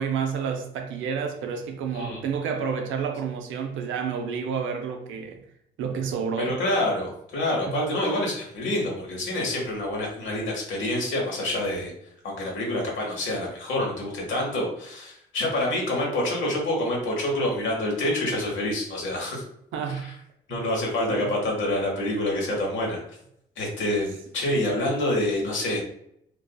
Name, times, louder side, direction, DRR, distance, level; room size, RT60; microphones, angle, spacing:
voice 1, 0.0-5.4 5.8-6.5 7.7-7.8 19.7-20.1 20.5-20.6 21.1-21.3, right 6 dB, 70° right, 4 dB, 0.5 m, -30 dB
voice 2, 6.4-11.9 12.2-19.4 19.9-20.1 20.5-23.0 23.6-25.8, left 1 dB, 70° left, -2 dB, 1.0 m, -27 dB
2.5 x 2.3 x 2.3 m, 0.73 s
hypercardioid pair, 55°, 21 cm